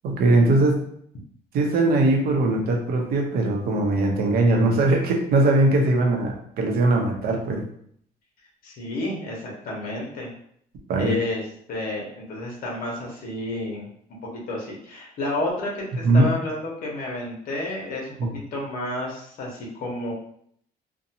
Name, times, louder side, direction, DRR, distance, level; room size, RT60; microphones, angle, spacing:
voice 1, 0.0-0.8 1.5-7.6 10.9-11.2 16.0-16.3 18.2-18.3, right 2 dB, 65° right, 1 dB, 0.7 m, -20 dB
voice 2, 8.6-10.3 11.0-11.4 11.7-13.9 14.3-18.1 18.5-20.1, left 2 dB, 60° left, -2 dB, 0.9 m, -30 dB
2.6 x 2.2 x 2.8 m, 0.66 s
cardioid pair, 110°, 17 cm